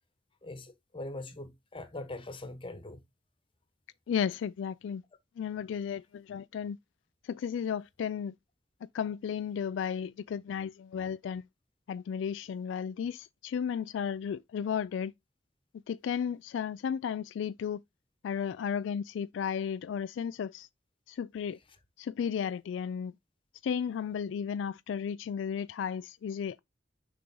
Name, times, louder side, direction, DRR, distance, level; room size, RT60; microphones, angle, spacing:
voice 1, 0.4-3.0, left 2 dB, 30° left, 1.1 m, -42 dB
voice 2, 4.1-5.0 5.4-6.8 7.3-8.3 8.9-11.4 11.9-15.1 15.9-17.8 18.2-20.7 21.1-21.6 22.0-23.1 23.6-26.6, left 7 dB, 75° left, 0.3 m, -34 dB
6.8 x 5.0 x 3.7 m
head